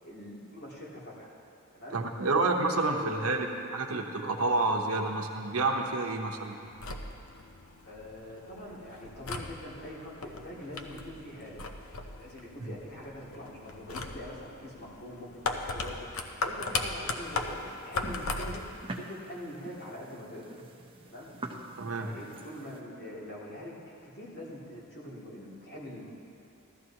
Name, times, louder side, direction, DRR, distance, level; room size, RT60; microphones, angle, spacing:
voice 1, 0.0-1.3 1.7-2.0 2.9-3.4 7.8-11.6 12.2-16.1 16.4-20.5 21.0-21.3 21.9-26.1, left 1 dB, 45° left, -6 dB, 2.6 m, -44 dB
voice 2, 1.9-3.5 3.7-6.6 21.8-22.1, right 3 dB, 80° right, 2 dB, 0.9 m, -29 dB
sound 1, 6.6-18.8, left 3 dB, 75° left, 0.8 m, -38 dB
sound 2, 17.2-22.8, right 2 dB, 25° right, 0.8 m, -46 dB
15.5 x 13.0 x 2.9 m, 2.7 s
head